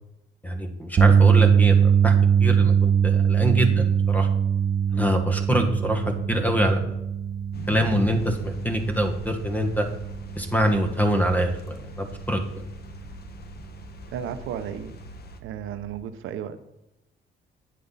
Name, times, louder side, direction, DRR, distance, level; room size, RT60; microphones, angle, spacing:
voice 1, 0.4-2.1 2.4-4.3 4.9-7.0 7.7-9.9 10.4-12.6, equal, 10° left, 5 dB, 1.8 m, -25 dB
sound 1, 1.0-13.2 13.6-13.8 16.0-16.1, right 7 dB, 35° right, 0.5 m, -22 dB
sound 2, 7.5-15.4, left 5 dB, 55° left, 1.2 m, -42 dB
voice 2, 14.1-14.9 15.4-16.7, right 9 dB, 85° right, 10 dB, 0.8 m, -34 dB
10.5 x 8.5 x 4.1 m, 0.90 s
cardioid pair, 90°, 20 cm